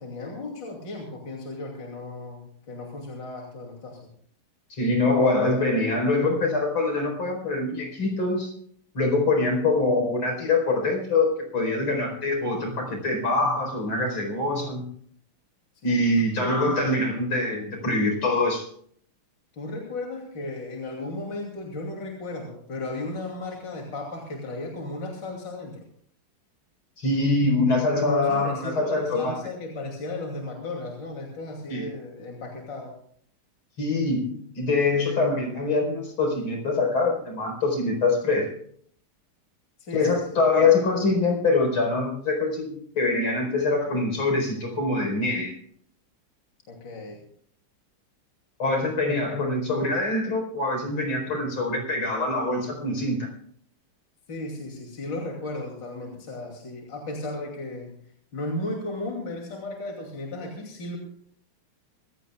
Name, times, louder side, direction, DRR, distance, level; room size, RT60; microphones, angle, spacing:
voice 1, 0.0-4.1 16.4-17.0 19.5-25.8 27.9-32.9 39.8-40.7 46.7-47.2 54.3-58.0 58.3-61.0, left 2 dB, 55° left, 0 dB, 3.4 m, -35 dB
voice 2, 4.7-8.5 8.9-14.9 15.8-18.7 27.0-29.4 31.7-31.9 33.8-38.5 39.9-45.6 48.6-53.3, left 3 dB, 70° left, 2 dB, 5.4 m, -24 dB
25.5 x 16.0 x 2.4 m, 0.62 s
omnidirectional pair, 2.4 m